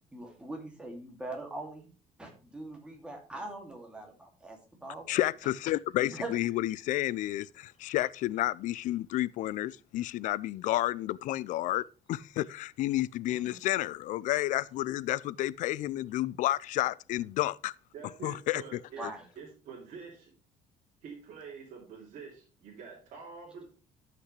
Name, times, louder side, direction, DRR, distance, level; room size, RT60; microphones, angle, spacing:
voice 1, 0.1-1.9 2.2-5.3 6.1-6.6 13.4-13.5 19.0-19.2, right 2 dB, 5° right, 2.4 m, -42 dB
voice 2, 5.1-17.7 18.2-19.1, left 15 dB, 60° left, 0.4 m, -31 dB
voice 3, 17.9-19.0 19.4-20.3 21.0-23.7, right 5 dB, 55° right, 2.7 m, -46 dB
13.0 x 5.9 x 3.2 m
cardioid pair, 165°, 15 cm